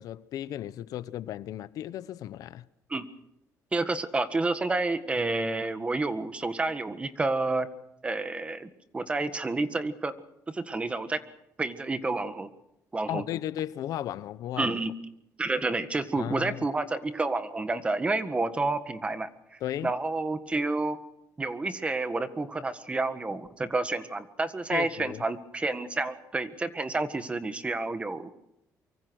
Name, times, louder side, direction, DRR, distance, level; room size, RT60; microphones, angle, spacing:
voice 1, 0.0-2.6 13.1-14.8 16.1-16.6 19.6-19.9 24.7-25.2, left 12 dB, 70° left, 0.8 m, -35 dB
voice 2, 3.7-7.7 8.0-10.1 10.5-11.2 11.6-12.5 12.9-13.2 14.6-14.9 15.4-21.0 21.4-28.3, right 3 dB, 20° right, 1.7 m, -29 dB
24.5 x 24.0 x 6.4 m
cardioid pair, 130°, 6 cm